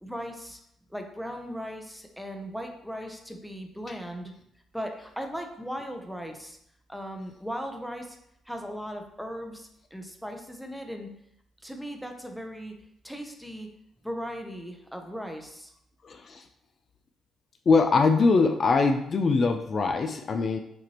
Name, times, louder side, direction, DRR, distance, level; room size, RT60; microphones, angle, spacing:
voice 1, 0.0-0.6 0.9-4.3 4.7-6.6 6.9-8.2 8.5-11.1 11.6-12.7 13.0-13.7 14.0-15.7, equal, ahead, 4 dB, 0.6 m, -37 dB
voice 2, 16.0-16.4 17.7-20.6, left 4 dB, 45° left, 5 dB, 0.3 m, -22 dB
6.0 x 2.5 x 2.9 m, 0.76 s
cardioid pair, 90°, 0 cm